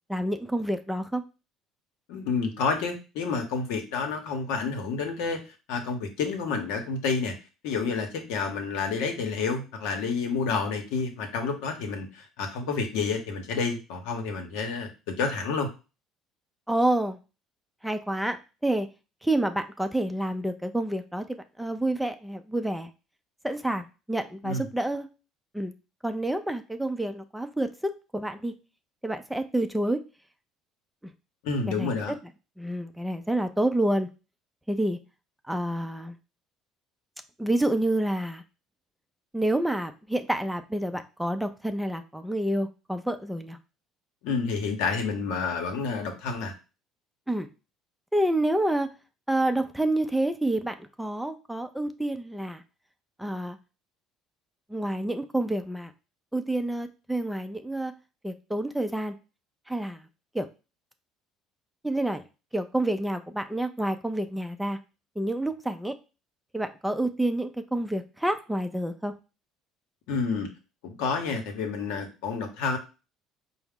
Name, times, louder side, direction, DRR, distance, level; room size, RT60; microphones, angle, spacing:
voice 1, 0.1-1.2 16.7-17.2 17.8-18.9 19.2-22.9 23.4-25.1 25.5-25.7 26.0-28.5 29.0-30.0 31.0-31.1 31.7-32.0 32.6-34.1 34.7-35.0 35.5-36.2 37.4-38.4 39.3-43.6 47.3-47.5 48.1-48.9 49.3-52.6 53.2-53.6 54.7-55.9 56.3-57.9 58.2-59.1 59.7-60.0 60.3-60.5 61.8-62.2 62.5-64.8 65.2-66.0 66.5-69.1, right 1 dB, 5° right, 7 dB, 0.4 m, -28 dB
voice 2, 2.1-5.4 5.7-7.4 7.6-15.7 24.4-24.7 31.4-32.1 44.2-46.5 70.1-70.5 70.8-72.8, left 4 dB, 80° left, 4 dB, 0.8 m, -29 dB
4.6 x 2.1 x 3.5 m, 0.31 s
supercardioid pair, 80°, 0 cm